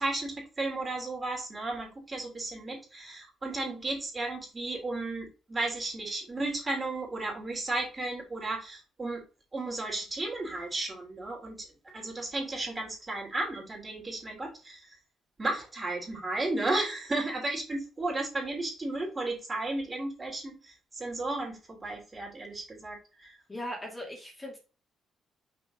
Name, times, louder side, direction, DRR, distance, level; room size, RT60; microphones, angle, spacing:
voice 1, 0.0-9.2 9.5-11.7 11.9-15.0 15.4-23.4, right 2 dB, 25° right, 0 dB, 3.2 m, -34 dB
voice 2, 23.5-24.6, left 1 dB, 20° left, -1 dB, 2.4 m, -39 dB
6.1 x 4.4 x 3.8 m, 0.33 s
cardioid pair, 90°, 0 cm